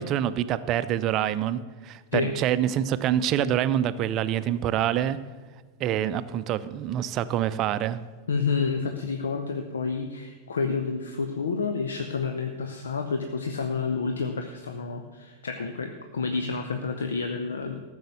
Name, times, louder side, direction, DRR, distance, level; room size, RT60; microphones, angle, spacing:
voice 1, 0.0-5.2 5.8-8.0, right 10 dB, 35° right, 14 dB, 0.5 m, -26 dB
voice 2, 8.3-17.8, left 5 dB, 70° left, 6 dB, 0.7 m, -29 dB
14.0 x 6.4 x 6.9 m, 1.4 s
figure-of-eight pair, 90°, 0 cm